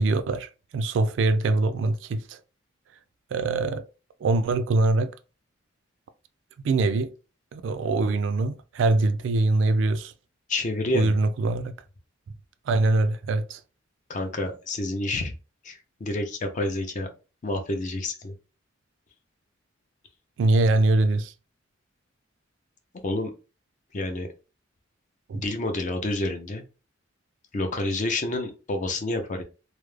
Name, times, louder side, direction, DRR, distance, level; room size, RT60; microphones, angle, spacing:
voice 1, 0.0-2.4 3.3-3.8 4.2-5.1 6.6-7.1 7.5-10.1 10.9-11.7 12.7-13.6 20.4-21.3 25.3-25.4, right 2 dB, 65° right, 0.3 m, -23 dB
voice 2, 10.5-11.1 14.1-15.3 15.6-17.1 17.4-18.3 23.0-23.3 23.9-24.3 25.3-26.6 27.5-29.4, left 2 dB, 40° left, 0.5 m, -29 dB
2.3 x 2.0 x 3.1 m
head